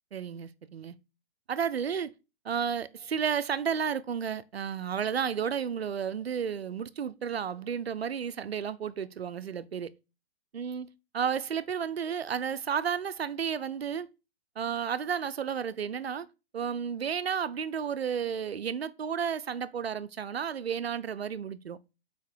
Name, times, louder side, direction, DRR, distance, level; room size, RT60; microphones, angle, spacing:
voice 1, 0.1-1.0 1.5-2.1 2.4-9.9 10.5-14.1 14.6-16.3 16.5-21.8, right 7 dB, 75° right, 0.8 m, -32 dB
6.5 x 5.0 x 4.7 m
figure-of-eight pair, 120°, 31 cm